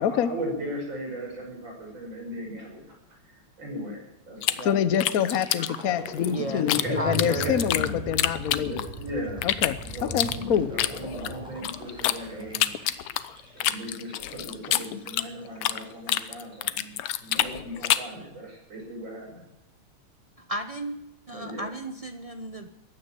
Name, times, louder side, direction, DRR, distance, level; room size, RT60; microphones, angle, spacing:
voice 1, 0.0-5.1 6.5-8.1 8.6-12.7 13.5-19.5 21.3-21.7, equal, 60° right, -1 dB, 6.5 m, -37 dB
sound 1, 4.4-6.8 7.1-9.0 9.4-12.2 12.5-18.2, left 13 dB, 90° left, 1.7 m, -27 dB
voice 2, 4.6-8.9 9.4-9.8 10.1-10.7, left 9 dB, 55° left, 13 dB, 1.0 m, -26 dB
sound 2, 5.2-15.1, equal, ahead, 5.3 m, -39 dB
voice 3, 6.3-6.7 7.0-7.6 20.4-21.0 21.3-22.7, right 1 dB, 40° right, 6 dB, 0.4 m, -33 dB
15.0 x 9.7 x 9.9 m, 0.89 s
omnidirectional pair, 2.4 m